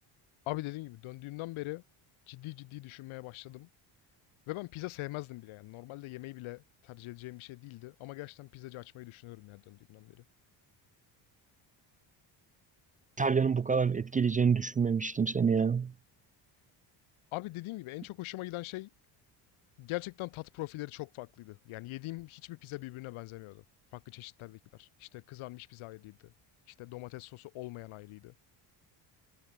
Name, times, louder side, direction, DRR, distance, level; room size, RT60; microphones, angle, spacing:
voice 1, 0.5-1.8 2.3-3.7 4.5-10.2 17.3-18.9 19.8-23.6 23.9-26.3 26.7-28.3, left 19 dB, 85° left, 2.2 m, -42 dB
voice 2, 13.2-15.9, right 6 dB, 20° right, 0.3 m, -27 dB
cardioid pair, 125°, 47 cm